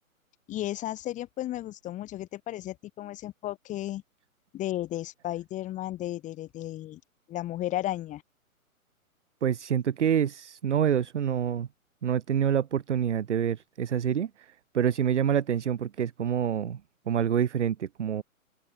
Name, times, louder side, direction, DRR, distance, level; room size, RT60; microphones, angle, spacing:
voice 1, 0.5-4.0 4.5-7.0 7.3-8.2, left 14 dB, 15° left, 4.3 m, -34 dB
voice 2, 9.4-11.7 12.0-16.8 17.1-18.2, right 9 dB, 55° right, 0.7 m, -27 dB
figure-of-eight pair, 130°, 43 cm